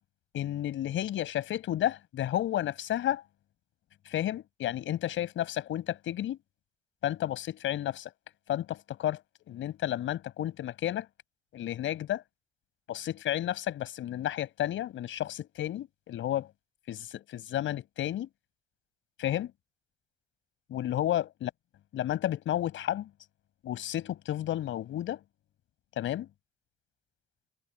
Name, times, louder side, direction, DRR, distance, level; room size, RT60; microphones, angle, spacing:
voice 1, 0.3-3.2 4.1-6.4 7.0-8.1 8.5-9.2 9.5-11.1 11.5-12.2 12.9-16.5 16.9-18.3 19.2-19.5 20.7-21.5 21.9-23.1 23.6-25.2 26.0-26.3, left 12 dB, 80° left, 5.8 m, -32 dB
cardioid pair, 90°, 20 cm